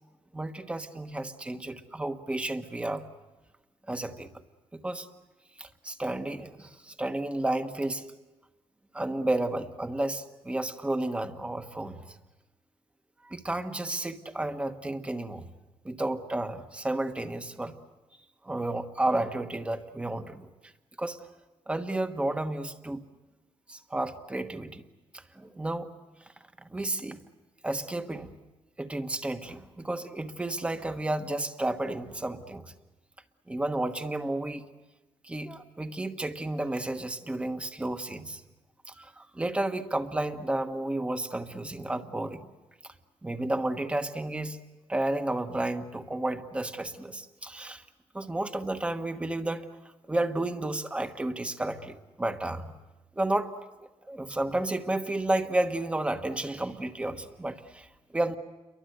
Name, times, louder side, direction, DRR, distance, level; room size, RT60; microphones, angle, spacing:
voice 1, 0.3-3.1 3.9-4.3 4.7-5.1 5.6-8.1 8.9-12.2 13.2-15.5 15.8-17.8 18.4-20.7 21.0-21.2 21.7-23.0 23.7-24.8 25.1-25.9 26.6-27.2 27.6-28.3 28.8-32.7 33.5-34.6 35.2-38.4 38.9-42.5 42.8-42.9 43.2-44.6 44.9-47.8 48.1-49.7 50.1-52.7 53.1-53.5 54.1-58.3, right 1 dB, 10° right, 8 dB, 1.2 m, -32 dB
29.5 x 23.5 x 8.0 m, 1.1 s
wide cardioid pair, 165°, 10 cm